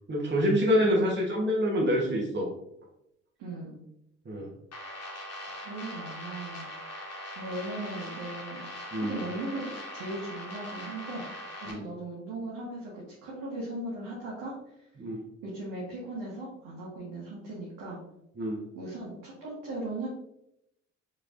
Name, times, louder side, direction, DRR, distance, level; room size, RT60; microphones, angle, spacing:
voice 1, 0.1-2.5 4.2-4.5 8.9-9.1 11.7-11.8 15.0-15.2 18.4-18.6, equal, 30° right, -2 dB, 1.2 m, -26 dB
voice 2, 0.8-1.1 3.4-3.8 5.5-6.7 7.3-8.6 9.0-11.2 11.6-14.5 15.4-18.0 18.7-20.1, right 2 dB, 65° right, -6 dB, 1.3 m, -38 dB
sound 1, 4.7-11.7, equal, 45° left, 1.1 m, -41 dB
4.8 x 3.2 x 2.6 m, 0.81 s
hypercardioid pair, 45°, 36 cm